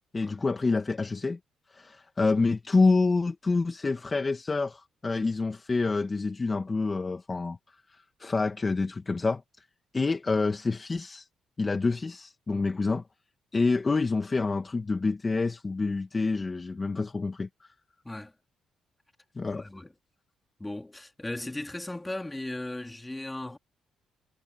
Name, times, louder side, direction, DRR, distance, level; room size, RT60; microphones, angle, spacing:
voice 1, 0.1-1.4 1.7-7.6 7.9-9.4 9.9-11.3 11.6-13.0 13.5-17.5 19.4-19.7, left 3 dB, 25° left, 1.7 m, -27 dB
voice 2, 19.5-19.9 20.6-23.6, left 1 dB, 10° left, 2.9 m, -37 dB
cardioid pair, 90°, 0 cm